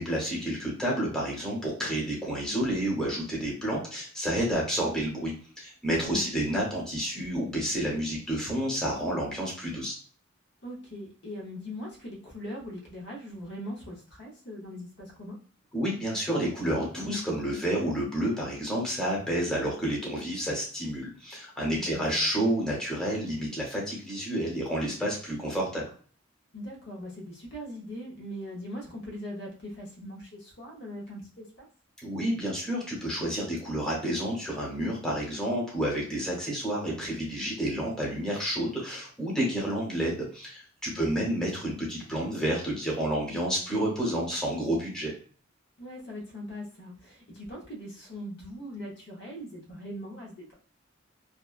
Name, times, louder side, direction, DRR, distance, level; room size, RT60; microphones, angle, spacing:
voice 1, 0.0-9.9 15.7-25.8 32.0-45.1, right 1 dB, 5° left, -4 dB, 0.9 m, -30 dB
voice 2, 10.6-15.4 21.7-22.3 26.5-31.7 40.9-41.4 45.8-50.5, equal, 60° left, -2 dB, 0.8 m, -41 dB
2.8 x 2.1 x 2.4 m, 0.43 s
head